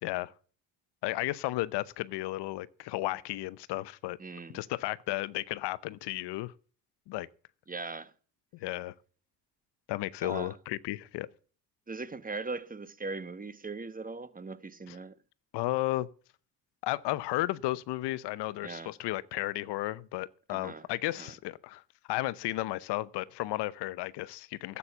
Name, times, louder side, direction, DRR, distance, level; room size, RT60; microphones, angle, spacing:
voice 1, 0.0-0.3 1.0-4.2 4.5-6.5 7.1-7.3 8.6-8.9 9.9-11.3 14.9-15.0 15.5-16.1 16.8-21.8 22.1-24.8, left 17 dB, 70° left, 0.8 m, -33 dB
voice 2, 4.2-4.6 7.7-8.1 10.2-10.6 11.9-15.2 18.6-18.9 20.5-20.9 21.2-21.3, right 3 dB, 20° right, 1.1 m, -39 dB
12.5 x 8.5 x 7.2 m
supercardioid pair, 75°, 43 cm